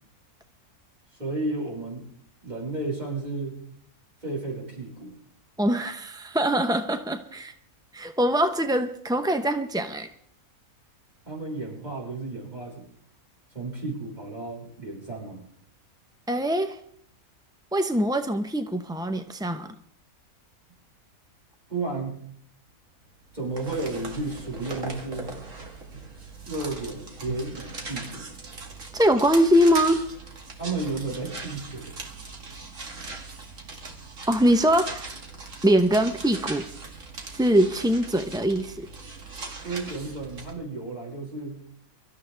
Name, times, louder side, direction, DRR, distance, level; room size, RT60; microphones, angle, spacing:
voice 1, 1.2-2.0 2.4-3.5 4.2-5.2 11.2-12.8 13.5-15.5 21.7-22.2 23.3-25.3 26.4-28.3 30.6-31.9 39.6-41.6, right 2 dB, 30° right, -4 dB, 6.0 m, -33 dB
voice 2, 5.6-7.5 7.9-10.1 16.3-16.8 17.7-19.8 28.9-30.0 34.3-35.1 35.6-36.7 37.3-38.9, equal, 5° right, 7 dB, 0.4 m, -23 dB
sound 1, 23.2-40.5, right 3 dB, 60° right, 2.5 m, -39 dB
24.0 x 13.5 x 3.4 m, 0.67 s
omnidirectional pair, 1.5 m